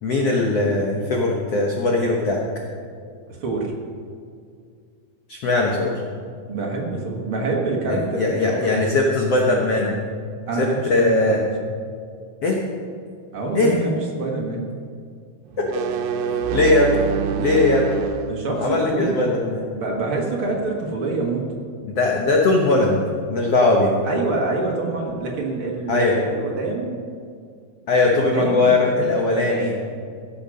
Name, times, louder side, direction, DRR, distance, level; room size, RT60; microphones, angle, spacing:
voice 1, 0.0-2.4 5.3-5.9 7.8-10.0 10.6-11.4 12.4-12.6 13.5-13.8 15.6-15.7 16.5-17.0 17.4-17.9 18.6-19.6 21.8-23.9 25.9-26.2 27.9-29.7, left 2 dB, 75° left, -1 dB, 1.4 m, -20 dB
voice 2, 3.3-3.7 6.5-8.7 10.5-11.4 13.3-14.6 18.3-19.3 19.7-21.4 24.0-27.0 28.0-29.8, right 3 dB, 55° right, -1 dB, 1.6 m, -26 dB
sound 1, 15.5-18.3, right 8 dB, 85° right, 2.7 m, -25 dB
16.0 x 7.1 x 6.4 m, 2.2 s
omnidirectional pair, 4.5 m